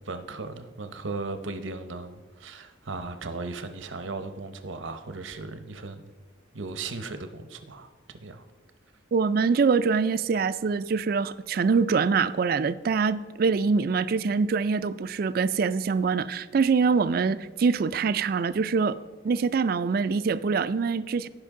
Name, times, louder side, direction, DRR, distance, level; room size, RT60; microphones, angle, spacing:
voice 1, 0.0-6.1 6.5-8.4, right 3 dB, 80° right, 9 dB, 0.8 m, -37 dB
voice 2, 9.1-19.0 19.2-21.3, right 5 dB, 50° right, 15 dB, 0.3 m, -24 dB
16.0 x 5.3 x 3.7 m, 1.3 s
head